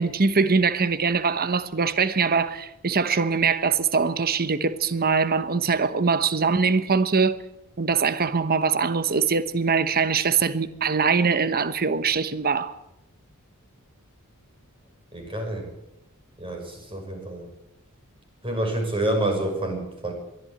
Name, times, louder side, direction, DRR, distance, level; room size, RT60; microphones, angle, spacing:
voice 1, 0.0-7.3 7.8-12.7, right 5 dB, 45° right, 1.1 m, -22 dB
voice 2, 15.1-15.7 16.4-17.5 18.4-20.1, right 1 dB, 25° right, 6.2 m, -28 dB
22.5 x 14.0 x 8.9 m
head